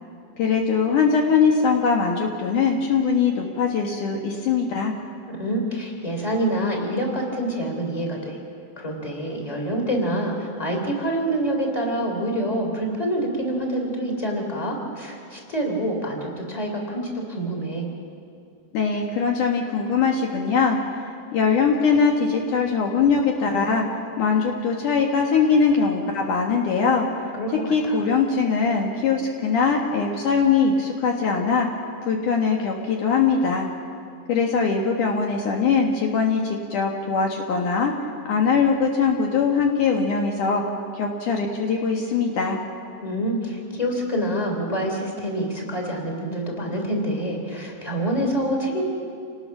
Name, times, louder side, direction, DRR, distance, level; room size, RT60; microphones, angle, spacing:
voice 1, 0.4-4.9 18.7-20.8 21.3-23.9 24.2-27.1 27.5-31.7 32.1-33.7 34.3-37.9 38.3-40.6 40.9-42.6, left 5 dB, 65° left, 1 dB, 2.8 m, -21 dB
voice 2, 5.4-8.4 8.8-17.9 27.4-27.5 27.8-28.0 43.0-48.8, right 1 dB, 10° left, 1 dB, 3.5 m, -26 dB
28.5 x 19.5 x 6.1 m, 2.4 s
omnidirectional pair, 4.0 m